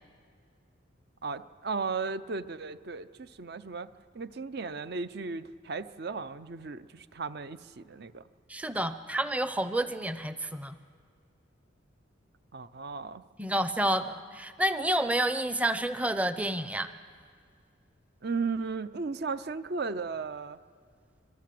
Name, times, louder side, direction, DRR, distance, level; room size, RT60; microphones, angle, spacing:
voice 1, 1.2-3.9 4.1-8.2 12.5-13.2 18.2-20.6, right 4 dB, 55° right, 13 dB, 0.6 m, -35 dB
voice 2, 8.5-10.8 13.4-16.9, right 1 dB, 5° right, 11 dB, 0.6 m, -29 dB
25.0 x 22.5 x 7.7 m, 2.1 s
head